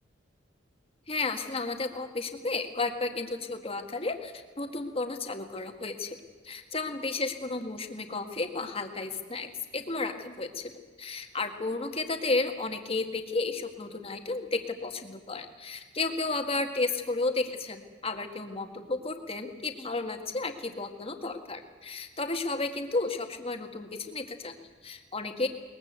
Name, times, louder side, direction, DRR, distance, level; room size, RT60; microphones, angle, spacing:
voice 1, 1.1-6.2 6.4-10.7 11.0-25.5, left 3 dB, 30° left, 6 dB, 1.7 m, -33 dB
21.5 x 21.0 x 8.1 m, 1.4 s
head